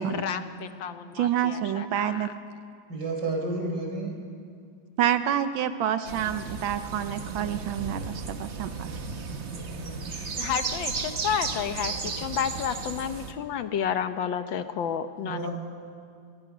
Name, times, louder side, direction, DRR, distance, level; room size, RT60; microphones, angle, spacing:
voice 1, 0.1-2.3 10.4-15.5, left 8 dB, 75° left, 9 dB, 1.7 m, -31 dB
voice 2, 1.1-2.3 5.0-8.9, right 10 dB, 85° right, 10 dB, 1.6 m, -28 dB
voice 3, 2.9-4.2 9.8-10.3 15.2-15.5, right 2 dB, 60° right, 1 dB, 4.9 m, -31 dB
Birds near a west virginia cornfield, 6.0-13.3, right 4 dB, 40° right, 1.3 m, -34 dB
24.5 x 24.5 x 6.2 m, 2.3 s
omnidirectional pair, 2.1 m